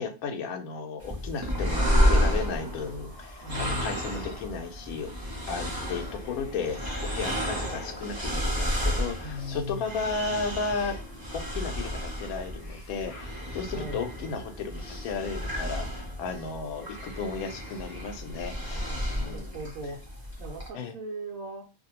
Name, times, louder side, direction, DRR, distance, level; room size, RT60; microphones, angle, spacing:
voice 1, 0.0-5.1 5.5-11.0 11.3-19.6 20.8-20.9, left 5 dB, 85° left, 6 dB, 1.1 m, -34 dB
sound 1, 1.0-20.7, equal, 25° right, 0.4 m, -31 dB
sound 2, 2.6-20.2, left 2 dB, 60° left, 1.0 m, -50 dB
voice 2, 3.4-4.0 9.2-9.9 13.7-14.1 18.6-21.6, left 1 dB, 70° right, -4 dB, 1.0 m, -39 dB
2.6 x 2.1 x 2.9 m, 0.30 s
omnidirectional pair, 1.5 m